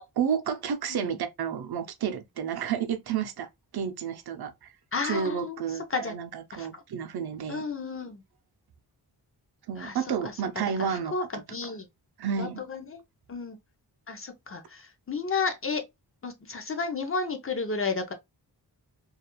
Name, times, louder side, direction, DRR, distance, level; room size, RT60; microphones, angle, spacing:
voice 1, 0.2-3.5 3.7-4.7 5.0-7.6 9.7-11.7 12.2-12.6, right 7 dB, 70° right, 0.5 m, -31 dB
voice 2, 4.9-5.6 5.9-6.1 6.5-6.8 7.5-8.2 9.8-10.0 10.8-11.2 11.5-11.9 12.4-13.0 13.3-13.6 14.1-15.8 16.2-18.1, left 4 dB, 35° left, 0.4 m, -32 dB
2.3 x 2.3 x 2.8 m
wide cardioid pair, 175°, 40 cm